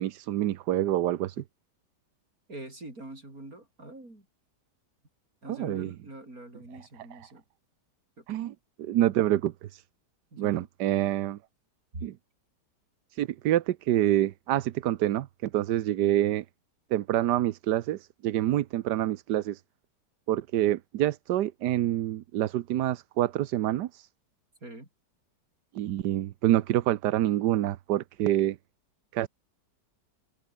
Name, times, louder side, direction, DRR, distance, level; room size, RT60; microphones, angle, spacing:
voice 1, 0.0-1.4 5.5-5.9 8.3-9.8 10.4-11.4 12.0-12.1 13.1-16.4 16.9-19.6 20.3-24.1 25.7-28.6 29.1-29.3, right 13 dB, 75° right, 1.4 m, -27 dB
voice 2, 2.5-4.3 5.4-7.4 8.2-8.3 10.3-10.7 11.9-12.1 24.6-24.9, right 2 dB, 55° right, 7.8 m, -44 dB
omnidirectional pair, 1.9 m